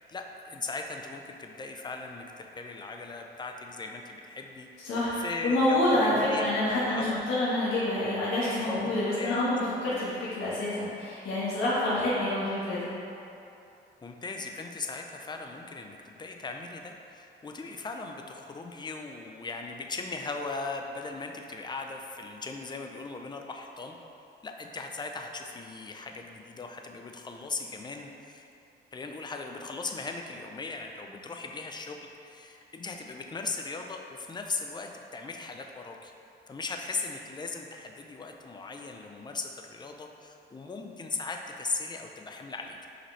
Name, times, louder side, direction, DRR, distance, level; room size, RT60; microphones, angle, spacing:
voice 1, 0.1-4.7 5.2-6.6 6.8-7.2 8.8-9.5 14.0-24.0 24.4-28.4 28.9-36.1 36.5-42.9, left 3 dB, 20° left, 3 dB, 0.5 m, -38 dB
voice 2, 4.8-12.9, left 1 dB, 85° left, -9 dB, 1.4 m, -27 dB
6.0 x 5.0 x 3.2 m, 2.8 s
cardioid pair, 90°, 20 cm